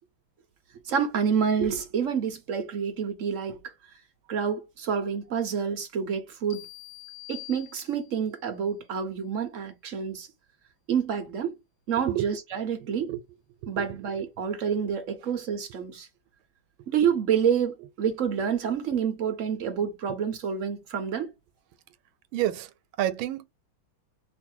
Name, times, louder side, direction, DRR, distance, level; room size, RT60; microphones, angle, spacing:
voice 1, 0.8-3.7 4.3-6.7 7.3-10.3 10.9-11.5 11.9-13.1 13.7-16.1 16.9-21.3, right 7 dB, 60° right, 0.8 m, -28 dB
sound 1, 6.5-8.3, left 19 dB, 65° left, 0.9 m, -45 dB
voice 2, 13.6-14.0 18.7-18.8 22.3-23.5, right 13 dB, 90° right, 1.4 m, -30 dB
3.1 x 2.6 x 4.4 m
omnidirectional pair, 2.2 m